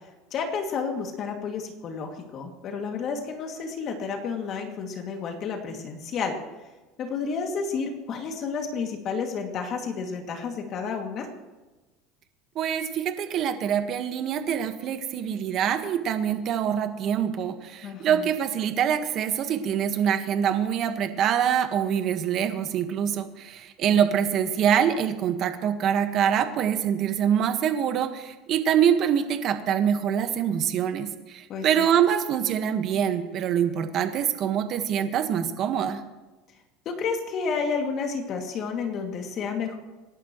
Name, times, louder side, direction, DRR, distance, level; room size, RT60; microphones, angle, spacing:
voice 1, 0.3-6.4 7.0-11.3 17.8-18.2 23.8-24.1 31.5-31.9 36.9-39.8, left 5 dB, 40° left, 2 dB, 2.5 m, -31 dB
voice 2, 12.5-36.0, right 9 dB, 45° right, 8 dB, 1.5 m, -25 dB
26.5 x 11.5 x 3.2 m, 1.2 s
supercardioid pair, 135°, 0 cm